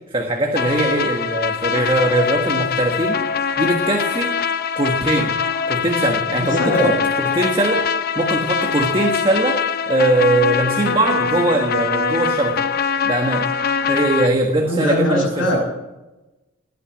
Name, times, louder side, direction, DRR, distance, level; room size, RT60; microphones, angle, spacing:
voice 1, 0.1-3.2 3.6-4.3 4.8-5.3 5.7-6.9 7.2-7.9 8.1-9.6 9.9-12.7 13.0-13.5 13.9-15.6, right 2 dB, 25° right, 2 dB, 1.5 m, -20 dB
sound 1, 0.5-14.3, left 6 dB, 50° left, 0.7 m, -22 dB
voice 2, 6.3-7.0 14.6-15.6, left 1 dB, 85° left, -7 dB, 6.4 m, -20 dB
20.5 x 9.3 x 7.5 m, 1.1 s
head